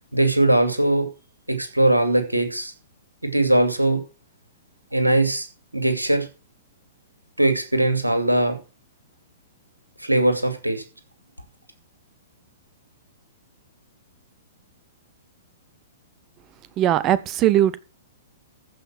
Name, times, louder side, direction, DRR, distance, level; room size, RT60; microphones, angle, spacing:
voice 1, 0.1-1.1 1.5-2.7 3.2-4.0 4.9-5.5 5.7-6.3 7.4-8.6 10.0-10.8, right 1 dB, 90° right, 2.7 m, -20 dB
voice 2, 16.8-17.8, right 12 dB, 30° right, 0.9 m, -19 dB
15.0 x 5.6 x 6.1 m
figure-of-eight pair, 110°, 0 cm